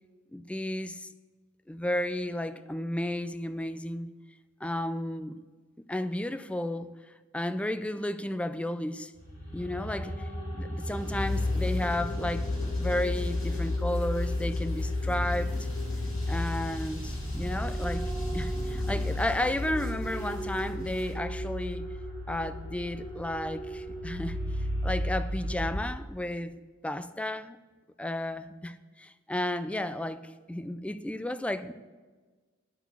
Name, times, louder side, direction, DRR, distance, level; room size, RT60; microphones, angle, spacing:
voice 1, 0.3-1.1 1.7-4.1 4.6-5.4 5.9-6.9 7.3-9.1 9.5-10.3 10.5-15.7 16.3-21.9 22.3-24.4 24.8-27.6 28.0-28.7 29.0-31.7, left 1 dB, 5° left, 0.3 m, -33 dB
sound 1, 9.2-25.8, left 1 dB, 55° left, 3.5 m, -33 dB
sound 2, 10.8-21.1, left 1 dB, 70° left, 3.5 m, -42 dB
10.5 x 6.1 x 6.9 m
head